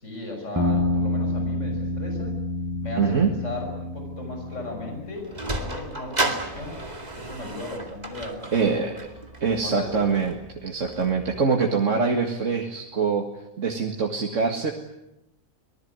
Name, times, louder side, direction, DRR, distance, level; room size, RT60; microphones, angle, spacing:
voice 1, 0.0-2.3 2.8-6.8 7.1-8.9 9.5-10.2, left 2 dB, 60° left, 3 dB, 6.3 m, -36 dB
sound 1, 0.6-5.2, left 2 dB, 10° right, 5.1 m, -28 dB
voice 2, 3.0-3.3 8.5-9.0 9.4-13.3 13.6-14.7, right 5 dB, 60° right, 2 dB, 2.2 m, -24 dB
Sliding door, 4.9-11.4, right 2 dB, 30° right, 2.5 m, -33 dB
25.0 x 19.5 x 9.5 m, 0.88 s
omnidirectional pair, 1.4 m